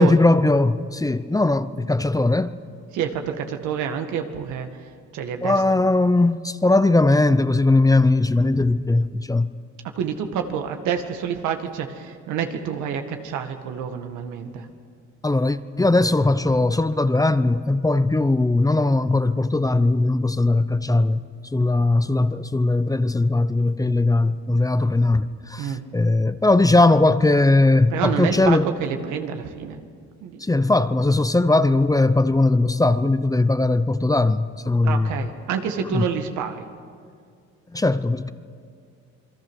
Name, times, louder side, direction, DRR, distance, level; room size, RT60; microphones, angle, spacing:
voice 1, 0.0-2.5 5.4-9.5 15.2-21.2 21.5-28.7 30.4-35.3 35.9-36.1 37.7-38.3, left 2 dB, 10° left, 0.8 m, -19 dB
voice 2, 2.9-4.7 5.1-5.6 10.0-14.7 25.6-25.8 27.9-29.8 30.2-30.4 34.8-36.6, right 7 dB, 85° right, 2.0 m, -28 dB
27.5 x 21.5 x 6.4 m
cardioid pair, 95°, 29 cm